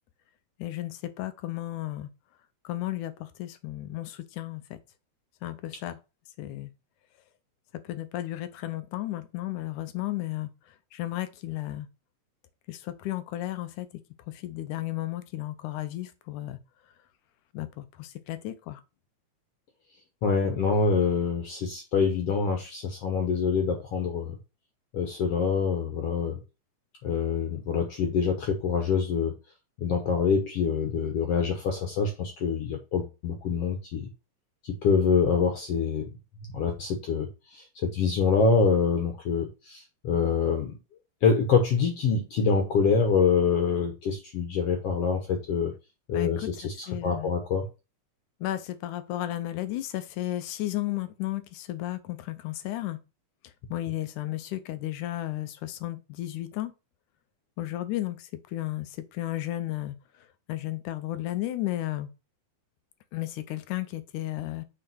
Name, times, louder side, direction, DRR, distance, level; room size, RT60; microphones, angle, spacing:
voice 1, 0.6-2.1 2.6-4.8 5.4-6.0 6.4-6.7 7.8-10.5 10.9-11.9 12.7-13.9 14.3-16.6 17.5-18.8 46.1-47.3 48.4-53.0 53.7-56.7 57.6-60.0 60.5-62.1 63.1-64.6, left 15 dB, 90° left, 2.3 m, -33 dB
voice 2, 20.2-24.3 24.9-26.4 27.0-29.3 29.8-34.1 34.6-36.1 36.5-37.3 37.5-40.8 41.2-45.7 46.1-46.7 47.0-47.7, left 5 dB, 60° left, 1.9 m, -25 dB
6.8 x 3.7 x 6.1 m
omnidirectional pair, 3.5 m